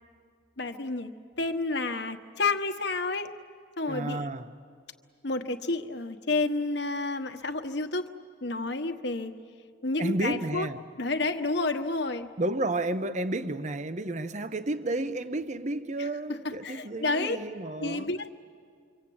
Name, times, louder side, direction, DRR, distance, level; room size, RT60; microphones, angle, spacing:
voice 1, 0.6-1.1 1.4-3.4 3.8-4.3 5.2-8.1 8.4-9.3 9.8-10.7 11.0-12.3 16.0-17.4 17.8-18.3, left 3 dB, 55° left, 1.2 m, -30 dB
voice 2, 3.9-4.5 10.0-10.8 12.4-18.1, right 2 dB, 35° right, 0.7 m, -31 dB
26.5 x 25.0 x 8.6 m
head